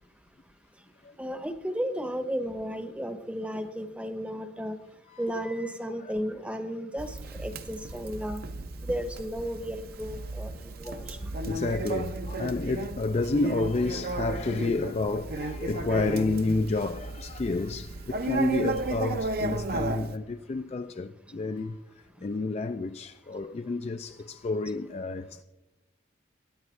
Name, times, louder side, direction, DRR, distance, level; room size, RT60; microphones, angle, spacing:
voice 1, 1.2-4.8 5.2-8.4 8.8-11.3, equal, 5° right, 0.8 m, -34 dB
Conversation, 7.0-20.2, right 2 dB, 50° right, 0.6 m, -34 dB
voice 2, 10.8-21.8 22.2-25.4, left 3 dB, 35° left, 0.3 m, -30 dB
22.0 x 9.4 x 3.2 m
head